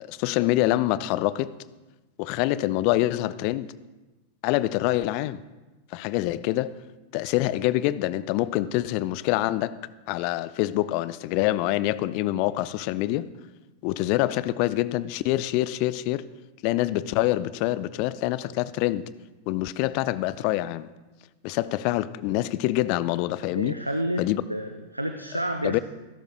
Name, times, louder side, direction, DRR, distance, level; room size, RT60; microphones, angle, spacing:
voice 1, 0.0-1.5 2.2-3.7 4.4-5.4 5.9-6.7 7.1-9.8 10.1-13.3 13.8-16.3 16.6-19.1 19.5-20.9 21.4-23.8 24.2-24.4 25.6-25.8, left 16 dB, 45° left, 0.4 m, -25 dB
voice 2, 23.5-25.8, right 1 dB, 85° right, 0.6 m, -30 dB
25.5 x 11.5 x 2.2 m
figure-of-eight pair, 90°, 0 cm